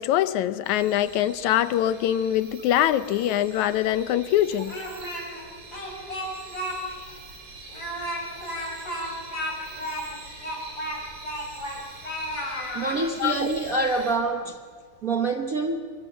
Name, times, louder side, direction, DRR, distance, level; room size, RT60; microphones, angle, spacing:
voice 1, 0.0-4.7 13.2-13.3, left 12 dB, 85° left, 13 dB, 2.2 m, -23 dB
sound 1, 0.6-14.1, right 3 dB, 75° right, 5.8 m, -45 dB
Speech, 4.5-5.4 5.7-6.8 7.1-7.2 7.7-11.8 12.0-13.0, equal, 40° left, 5.7 m, -33 dB
voice 2, 12.7-14.6 15.0-15.8, right 3 dB, 55° right, 4 dB, 0.9 m, -26 dB
26.5 x 23.5 x 7.3 m, 2.1 s
omnidirectional pair, 3.3 m